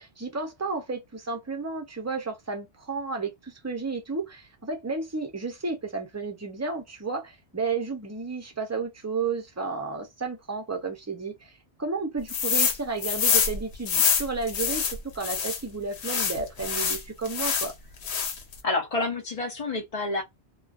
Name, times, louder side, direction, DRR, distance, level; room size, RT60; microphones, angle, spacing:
voice 1, 0.0-11.5 11.8-17.7, right 4 dB, 20° right, 0.6 m, -32 dB
sound 1, 12.3-12.8 13.0-15.6 16.0-17.7 18.0-18.5, left 6 dB, 80° left, 0.9 m, -25 dB
voice 2, 18.6-20.2, left 3 dB, 40° left, 0.6 m, -28 dB
2.4 x 2.3 x 2.4 m
omnidirectional pair, 1.1 m